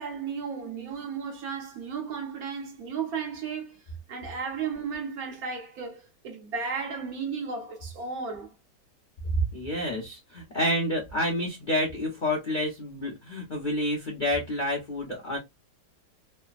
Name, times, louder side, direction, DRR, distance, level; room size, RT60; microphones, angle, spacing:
voice 1, 0.0-3.8 4.1-8.5, right 5 dB, 65° right, 1.2 m, -34 dB
voice 2, 9.3-15.4, equal, 45° left, 0.6 m, -29 dB
3.2 x 2.0 x 2.3 m
omnidirectional pair, 1.9 m